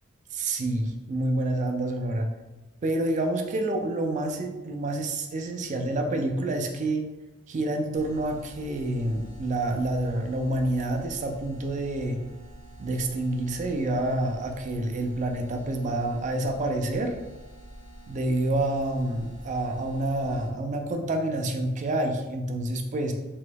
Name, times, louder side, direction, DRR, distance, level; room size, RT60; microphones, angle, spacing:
voice 1, 0.3-2.3 2.8-7.0 7.5-12.2 12.8-17.1 18.1-23.1, right 1 dB, 35° right, 4 dB, 0.3 m, -28 dB
sound 1, 7.9-20.5, right 1 dB, 20° left, 0.5 m, -47 dB
3.0 x 2.2 x 3.3 m, 1.1 s
head